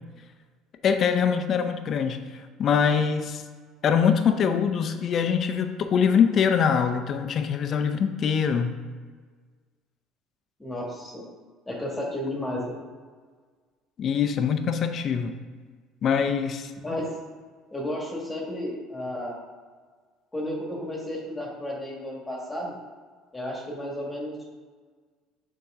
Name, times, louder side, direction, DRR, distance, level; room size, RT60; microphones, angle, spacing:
voice 1, 0.8-3.4 3.8-8.8 14.0-15.4 16.0-16.7, left 7 dB, 50° left, 8 dB, 0.6 m, -23 dB
voice 2, 10.6-11.2 11.7-12.7 16.8-17.1 17.7-19.4 20.3-22.7 23.3-24.3, left 1 dB, 15° left, -2 dB, 1.7 m, -32 dB
6.8 x 3.8 x 3.6 m, 1.5 s
hypercardioid pair, 75°, 0 cm